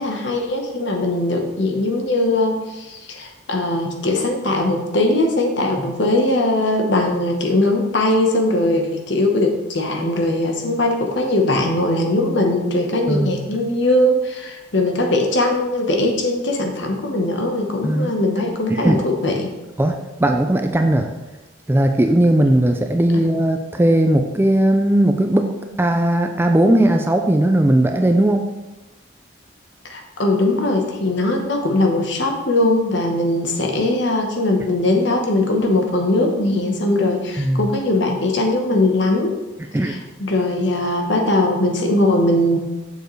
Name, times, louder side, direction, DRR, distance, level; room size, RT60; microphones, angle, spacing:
voice 1, 0.0-19.5 23.1-23.2 29.9-39.3 39.8-42.6, left 1 dB, 65° left, 3 dB, 1.1 m, -20 dB
voice 2, 13.1-13.4 17.8-18.1 18.7-19.0 19.8-21.1 21.7-25.5 25.8-28.5 37.4-37.7 39.7-40.0, right 1 dB, 10° right, 5 dB, 0.3 m, -17 dB
6.9 x 6.5 x 3.2 m, 1.1 s
head